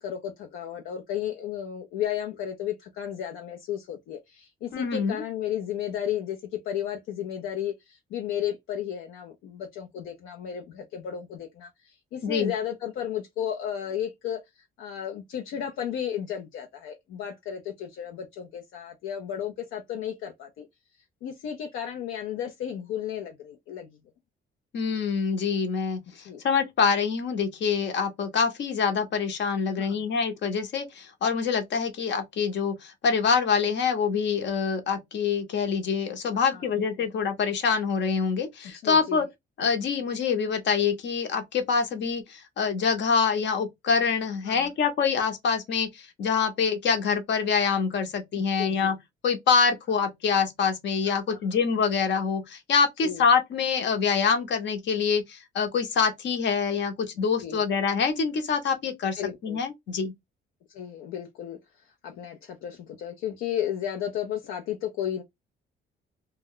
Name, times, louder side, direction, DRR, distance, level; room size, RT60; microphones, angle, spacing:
voice 1, 0.0-14.4 14.8-20.7 21.2-23.9 26.1-26.4 29.7-30.1 36.3-36.6 37.0-37.1 38.8-39.2 44.4-44.7 48.4-48.9 51.3-51.4 53.0-53.2 57.4-57.6 59.2-59.6 60.7-61.6 62.0-65.2, left 10 dB, 90° left, 0.5 m, -33 dB
voice 2, 4.7-5.2 12.2-12.5 24.7-39.3 39.6-49.0 49.2-60.1, left 6 dB, 65° left, 0.8 m, -25 dB
2.3 x 2.2 x 3.5 m
cardioid pair, 90°, 20 cm